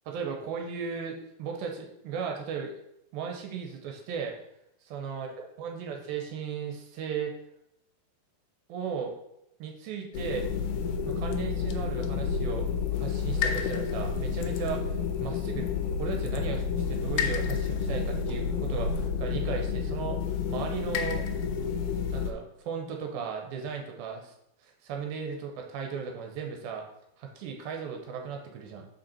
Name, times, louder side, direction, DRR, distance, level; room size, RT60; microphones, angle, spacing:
voice 1, 0.1-2.7 3.1-4.3 4.8-5.3 5.6-7.4 8.7-9.2 9.6-10.5 11.0-12.7 12.9-14.8 15.2-20.2 20.5-21.3 21.6-21.7 22.1-24.3 24.6-26.9 27.2-28.9, right 6 dB, 80° right, 2 dB, 2.5 m, -36 dB
sound 1, 10.1-22.3, left 6 dB, 80° left, 2.1 m, -30 dB
5.6 x 5.3 x 4.3 m, 0.82 s
omnidirectional pair, 4.4 m